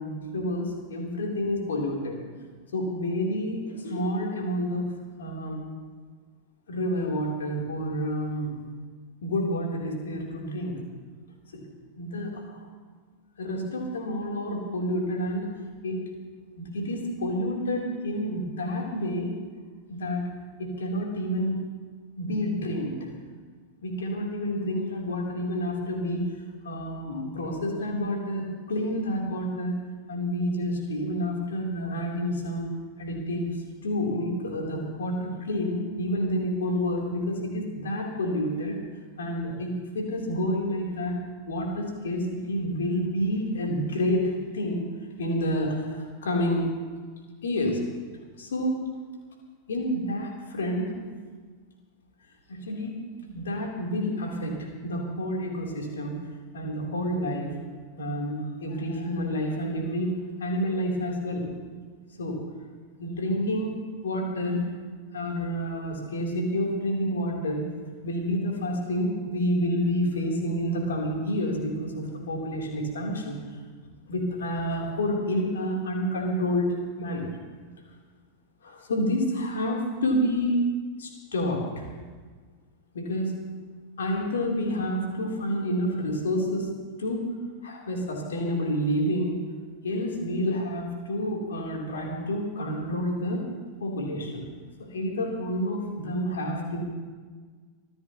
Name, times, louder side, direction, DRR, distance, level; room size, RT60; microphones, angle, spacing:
voice 1, 0.0-2.2 2.7-4.9 5.2-5.6 6.7-8.6 9.2-10.8 12.0-12.7 13.4-15.5 15.8-16.1 16.6-19.3 19.9-20.2 20.6-21.7 22.2-23.0 23.8-26.3 26.6-29.7 30.1-32.6 33.0-33.5 33.8-38.8 39.2-41.2 41.5-44.8 45.2-46.7 47.4-47.8 48.4-48.8 49.7-50.9 52.5-53.0 53.3-56.2 56.5-57.5 58.0-61.5 62.2-62.4 63.0-63.8 64.0-64.7 65.1-67.6 68.0-73.4 74.1-77.3 78.6-80.6 81.0-81.9 82.9-83.4 84.0-86.7 87.0-87.2 87.6-89.4 89.8-93.5 93.8-94.5 94.8-96.8, equal, 65° left, -1 dB, 3.8 m, -29 dB
24.0 x 15.5 x 3.2 m, 1.5 s
figure-of-eight pair, 90°, 0 cm